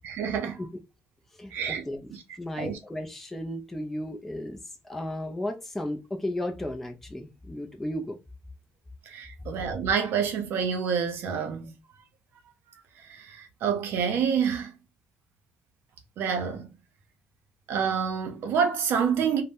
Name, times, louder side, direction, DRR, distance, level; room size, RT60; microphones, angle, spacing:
voice 1, 0.0-0.6 1.5-1.8 2.1-2.2 2.6-2.8 9.1-11.8 13.0-14.7 16.2-16.7 17.7-19.4, right 7 dB, 65° right, 0.6 m, -28 dB
voice 2, 1.4-2.1 2.4-8.2, left 1 dB, 5° left, 0.4 m, -34 dB
2.6 x 2.0 x 3.4 m
cardioid pair, 170°, 4 cm